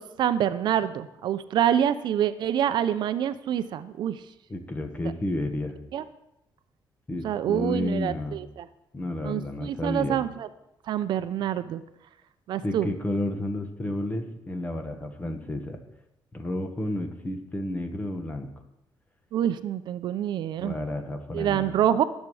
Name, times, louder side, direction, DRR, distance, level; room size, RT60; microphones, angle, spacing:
voice 1, 0.0-4.2 5.9-6.0 7.2-8.7 9.2-10.5 10.9-11.8 12.5-12.9 19.3-20.8 21.3-22.0, right 10 dB, 70° right, 12 dB, 0.6 m, -26 dB
voice 2, 4.5-5.7 7.1-8.4 8.9-10.2 12.6-15.8 16.3-18.5 20.6-21.6, left 1 dB, 20° left, 6 dB, 1.5 m, -31 dB
20.0 x 7.4 x 4.9 m, 0.88 s
cardioid pair, 145°, 8 cm